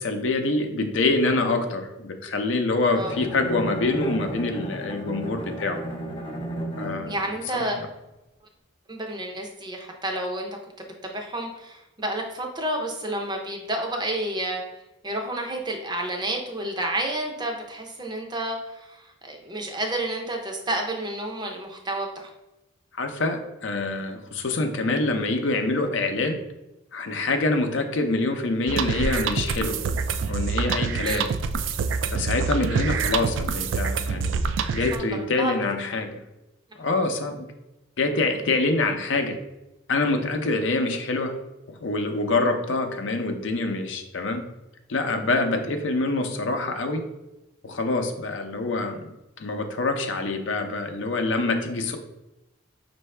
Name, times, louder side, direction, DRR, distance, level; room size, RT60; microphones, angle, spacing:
voice 1, 0.0-5.8 6.8-7.2 7.5-7.9 22.9-26.4 26.9-29.8 30.3-31.3 32.1-34.3 34.7-36.2 36.8-37.5 38.0-39.4 39.9-41.3 41.7-44.4 44.9-47.0 47.6-52.0, left 2 dB, 75° left, 5 dB, 0.5 m, -25 dB
Bowed string instrument, 2.9-7.3, right 1 dB, 25° left, 0.6 m, -34 dB
voice 2, 7.1-7.8 8.9-10.5 10.8-14.6 15.0-22.3 31.0-31.3 34.9-35.1 35.4-35.5, right 1 dB, 20° right, 2 dB, 0.5 m, -30 dB
sound 1, 28.7-35.0, right 5 dB, 70° right, 0.3 m, -26 dB
5.5 x 2.6 x 3.2 m, 0.98 s
head